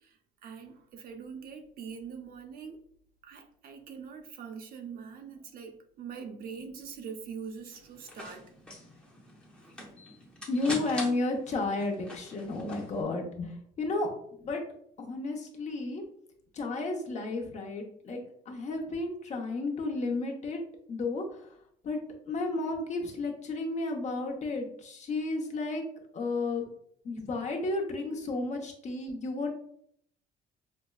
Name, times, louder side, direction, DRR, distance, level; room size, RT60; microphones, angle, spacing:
voice 1, 0.0-2.8 3.2-8.5, right 6 dB, 60° right, 5 dB, 0.6 m, -43 dB
sound 1, 7.7-13.0, left 1 dB, 5° left, 0.8 m, -43 dB
voice 2, 10.5-14.1 14.4-14.6 15.0-16.0 16.5-20.6 20.9-21.6 21.8-22.0 22.3-25.8 26.1-26.7 27.0-29.5, left 2 dB, 45° left, 2 dB, 0.8 m, -32 dB
5.1 x 2.1 x 2.3 m, 0.65 s
cardioid pair, 110°, 17 cm